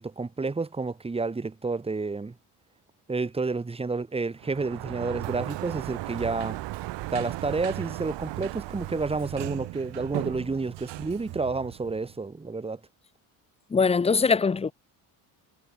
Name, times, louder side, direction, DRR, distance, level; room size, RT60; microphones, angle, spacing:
voice 1, 0.0-2.3 3.1-6.6 7.1-12.8, right 3 dB, 15° right, 1.2 m, -30 dB
Sliding door, 4.4-12.2, right 18 dB, 75° right, 1.8 m, -36 dB
voice 2, 13.7-14.7, left 5 dB, 15° left, 0.7 m, -22 dB
cardioid pair, 110°, 44 cm